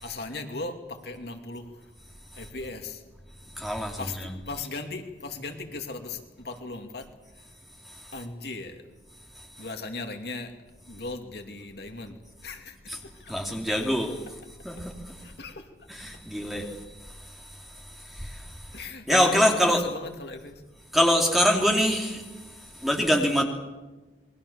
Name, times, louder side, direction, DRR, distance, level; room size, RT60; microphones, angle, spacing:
voice 1, 0.0-1.7 2.4-3.0 4.0-4.1 4.5-7.0 8.1-8.8 9.6-10.5 10.9-12.1 12.4-12.9 13.2-13.3 15.2-15.6 18.7-20.6, left 3 dB, 60° left, 4 dB, 2.7 m, -37 dB
voice 2, 3.6-4.3 7.8-8.1 9.3-9.5 12.9-13.0 13.3-14.1 14.6-15.2 16.0-18.7 19.1-19.8 20.9-23.4, equal, ahead, 1 dB, 2.9 m, -25 dB
28.0 x 22.0 x 7.1 m, 1.1 s
head